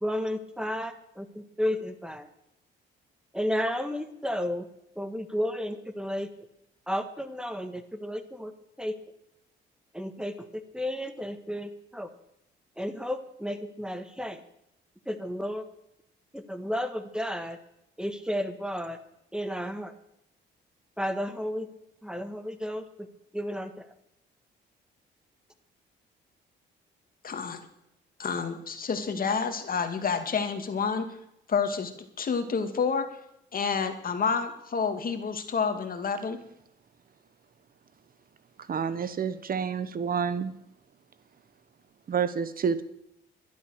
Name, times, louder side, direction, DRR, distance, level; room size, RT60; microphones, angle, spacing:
voice 1, 0.0-2.3 3.3-4.7 5.0-6.3 6.9-8.5 8.8-8.9 9.9-10.5 10.7-12.1 12.8-14.4 15.1-15.6 16.3-17.6 18.0-19.0 19.3-19.9 21.0-21.7 22.0-23.1 23.3-23.9, equal, 5° right, 9 dB, 1.5 m, -32 dB
voice 2, 27.2-27.6 28.2-31.1 31.5-31.9 32.2-33.0 33.5-36.4, left 5 dB, 45° left, 7 dB, 2.2 m, -29 dB
voice 3, 38.7-40.5 42.1-42.8, right 6 dB, 45° right, 14 dB, 1.0 m, -28 dB
12.0 x 11.5 x 6.5 m, 0.79 s
cardioid pair, 90°, 20 cm